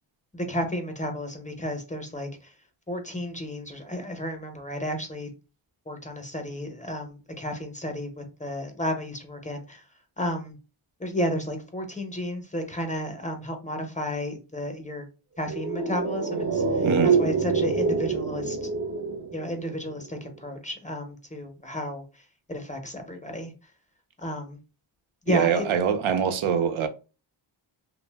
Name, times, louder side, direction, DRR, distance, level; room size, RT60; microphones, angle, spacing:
voice 1, 0.3-2.5 2.9-5.3 5.9-9.8 10.2-10.6 11.0-15.1 15.4-16.9 17.2-18.7 19.3-22.0 22.5-23.5 24.2-24.6 25.3-25.7, equal, 15° left, 0.6 m, -32 dB
sound 1, 15.5-20.0 20.3-20.4, right 5 dB, 30° right, 0.5 m, -26 dB
voice 2, 16.8-17.1 25.3-26.9, right 7 dB, 75° right, 0.6 m, -24 dB
2.5 x 2.0 x 3.3 m
cardioid pair, 85°, 48 cm